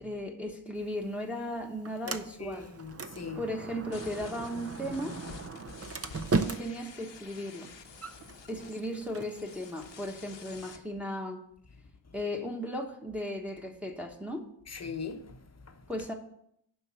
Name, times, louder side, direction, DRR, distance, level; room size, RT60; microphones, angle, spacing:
voice 1, 0.0-2.7 3.4-5.2 6.3-7.7 8.5-11.4 12.1-14.4 15.9-16.1, equal, 5° right, 1.1 m, -36 dB
Sliding door, 0.8-10.7, right 3 dB, 35° right, 0.5 m, -39 dB
voice 2, 2.1-3.4 14.7-15.7, left 5 dB, 35° left, 0.8 m, -41 dB
sound 1, 3.9-10.8, left 6 dB, 75° left, 0.9 m, -50 dB
7.1 x 5.4 x 7.0 m
wide cardioid pair, 100°, 44 cm